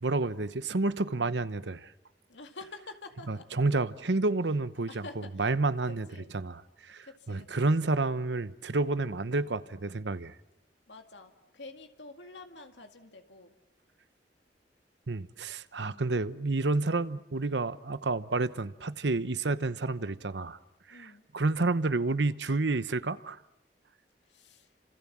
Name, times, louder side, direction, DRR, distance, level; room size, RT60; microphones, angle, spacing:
voice 1, 0.0-1.9 3.3-5.0 5.4-6.1 6.3-10.3 15.1-20.6 20.9-23.4, right 3 dB, 75° right, 1.0 m, -30 dB
voice 2, 2.3-3.5 4.9-5.5 6.1-6.3 7.0-7.9 9.4-9.8 10.9-13.5 15.8-16.1 20.9-21.2 24.2-24.8, left 3 dB, 90° left, 2.1 m, -49 dB
29.5 x 26.5 x 7.5 m
head